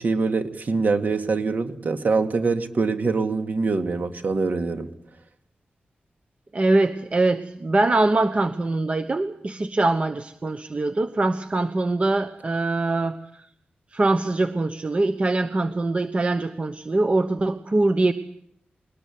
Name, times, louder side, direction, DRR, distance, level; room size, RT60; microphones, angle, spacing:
voice 1, 0.0-4.9, right 4 dB, 55° right, 6 dB, 2.4 m, -24 dB
voice 2, 6.5-13.2 13.9-18.1, right 2 dB, 35° right, 9 dB, 1.2 m, -23 dB
22.5 x 20.0 x 9.4 m, 0.71 s
wide cardioid pair, 120°, 3 cm